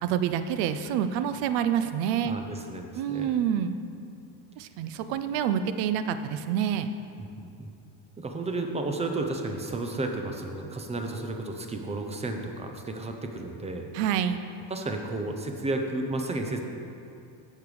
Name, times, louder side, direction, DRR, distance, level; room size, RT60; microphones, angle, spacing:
voice 1, 0.0-2.4 3.0-3.8 4.6-6.9 13.9-14.4, right 9 dB, 85° right, 10 dB, 0.6 m, -27 dB
voice 2, 2.2-3.3 7.2-7.7 8.2-13.9 14.7-16.6, right 2 dB, 15° right, 4 dB, 0.4 m, -32 dB
8.5 x 6.7 x 4.8 m, 2.5 s
cardioid pair, 145°, 49 cm